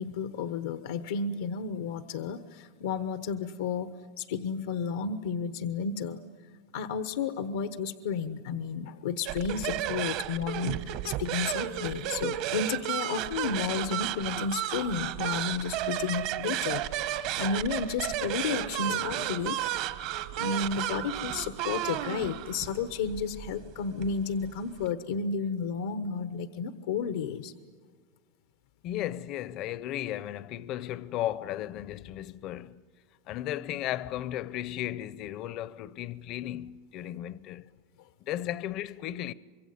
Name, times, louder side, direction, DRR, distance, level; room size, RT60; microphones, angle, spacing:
voice 1, 0.0-6.2 6.7-19.6 20.4-27.5, left 6 dB, 85° left, 1.1 m, -32 dB
sound 1, 9.3-24.9, right 13 dB, 55° right, 1.2 m, -33 dB
voice 2, 28.8-32.8 33.3-37.7 38.2-39.3, left 13 dB, 45° left, 0.7 m, -35 dB
25.5 x 23.0 x 9.4 m
supercardioid pair, 140°, 0 cm